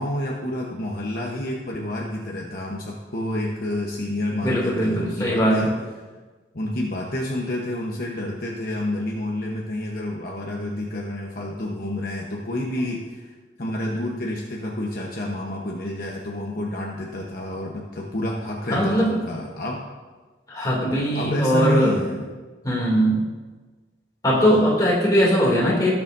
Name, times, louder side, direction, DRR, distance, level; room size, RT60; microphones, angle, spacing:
voice 1, 0.0-5.8 6.5-19.8 20.9-22.3 24.3-24.6, left 1 dB, 50° left, -2 dB, 1.0 m, -29 dB
voice 2, 4.4-5.6 18.7-19.1 20.5-22.0 22.6-23.2 24.2-25.9, equal, 20° left, -5 dB, 2.6 m, -20 dB
18.5 x 7.1 x 2.7 m, 1.3 s
head